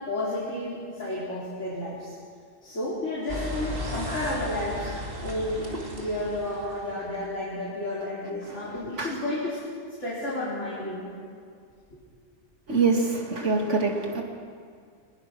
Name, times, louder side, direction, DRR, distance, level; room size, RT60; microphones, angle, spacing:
voice 1, 0.1-2.2 2.6-4.9 5.2-5.7 5.9-9.6 10.0-11.1, left 1 dB, 80° left, -8 dB, 4.4 m, -31 dB
sound 1, 3.3-7.2, left 1 dB, 50° right, 2.8 m, -35 dB
voice 2, 8.5-9.1 12.7-14.2, right 4 dB, 80° right, 1 dB, 2.7 m, -25 dB
22.0 x 20.5 x 6.2 m, 2.1 s
omnidirectional pair, 1.2 m